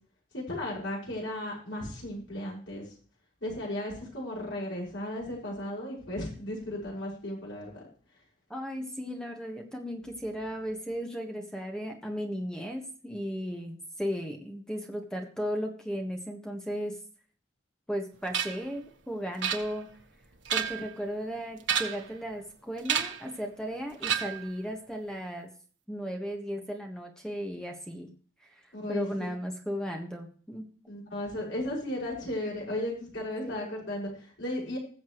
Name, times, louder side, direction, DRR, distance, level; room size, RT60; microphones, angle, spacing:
voice 1, 0.3-2.8 3.4-7.8 28.7-29.3 30.9-34.8, left 1 dB, 75° left, -4 dB, 6.0 m, -35 dB
voice 2, 8.5-17.0 17.9-19.9 20.5-25.5 25.9-28.1 28.4-28.6 28.9-30.7 33.4-33.7, equal, 5° left, 2 dB, 1.5 m, -35 dB
sound 1, 18.3-18.7 19.4-20.0 20.4-20.9 21.6-22.1 22.9-23.3 24.0-24.5, right 8 dB, 75° right, 1.5 m, -30 dB
20.5 x 7.2 x 3.1 m, 0.44 s
head